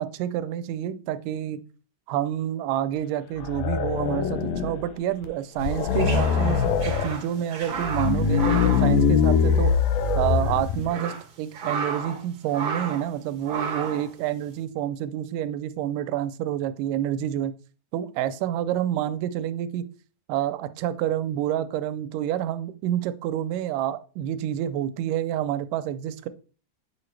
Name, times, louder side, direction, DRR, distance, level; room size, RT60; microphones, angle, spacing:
voice 1, 0.0-1.6 2.1-9.7 10.2-17.5 17.9-19.9 20.3-26.3, right 11 dB, 85° right, 13 dB, 2.2 m, -28 dB
sound 1, 3.4-4.9 5.2-5.3 5.6-7.1 7.8-10.9, left 6 dB, 80° left, 1.6 m, -23 dB
sound 2, 5.7-9.8 10.0-10.1 10.6-12.2 12.5-13.1 13.4-14.1, right 5 dB, 55° right, 1.5 m, -33 dB
8.2 x 4.9 x 3.2 m, 0.37 s
omnidirectional pair, 3.7 m